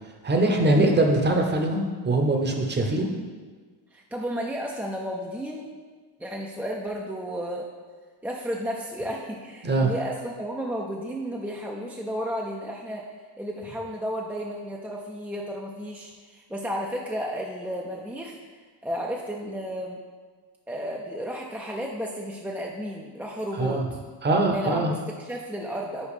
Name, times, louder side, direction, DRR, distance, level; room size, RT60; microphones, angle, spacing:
voice 1, 0.2-3.1 9.6-9.9 23.6-23.8 24.2-24.9, right 2 dB, 25° right, 3 dB, 0.8 m, -22 dB
voice 2, 3.9-5.7 6.2-7.7 8.2-18.4 18.8-20.0 20.7-23.8 24.5-26.1, equal, 5° right, -2 dB, 0.4 m, -33 dB
5.3 x 4.6 x 4.9 m, 1.5 s
cardioid pair, 115°, 46 cm